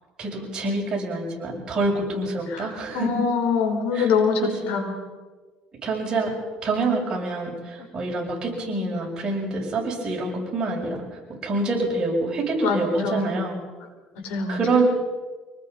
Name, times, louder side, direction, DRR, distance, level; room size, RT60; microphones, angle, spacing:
voice 1, 0.2-3.1 3.9-4.1 4.4-4.8 5.8-6.3 6.6-13.6 14.5-14.8, right 2 dB, 30° right, -2 dB, 7.3 m, -26 dB
voice 2, 2.9-4.4 4.7-4.9 7.8-7.9 12.6-13.3 14.2-14.6, left 5 dB, 80° left, 3 dB, 5.1 m, -24 dB
24.5 x 20.0 x 5.6 m, 1.3 s
cardioid pair, 125°, 3 cm